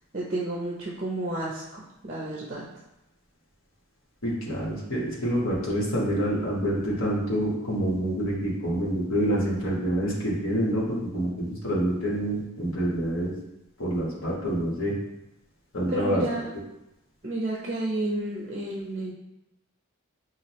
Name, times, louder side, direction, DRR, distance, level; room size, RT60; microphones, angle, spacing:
voice 1, 0.1-2.7 15.9-16.5 17.2-19.1, right 1 dB, 35° right, -4 dB, 0.6 m, -31 dB
voice 2, 4.2-13.3 13.8-14.9 15.7-16.2, equal, 70° left, -5 dB, 1.3 m, -27 dB
5.8 x 2.4 x 3.0 m, 0.90 s
head